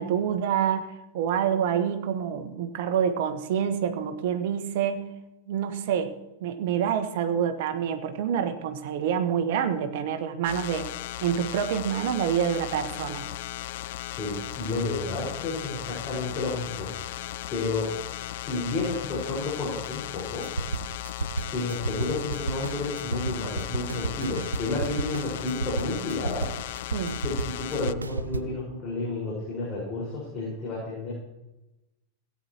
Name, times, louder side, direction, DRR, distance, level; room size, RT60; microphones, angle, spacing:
voice 1, 0.0-5.1 5.5-10.9 11.2-13.3 26.9-27.2, right 8 dB, 60° right, 8 dB, 1.3 m, -27 dB
sound 1, 10.4-27.9, left 15 dB, 60° left, 0.3 m, -37 dB
voice 2, 14.1-16.9 17.2-17.9 18.3-20.4 21.5-26.5 27.2-31.1, left 2 dB, 35° left, -5 dB, 5.0 m, -31 dB
sound 2, 20.3-28.4, right 3 dB, 85° right, 0.5 m, -32 dB
17.0 x 9.7 x 3.0 m, 0.95 s
figure-of-eight pair, 90°, 0 cm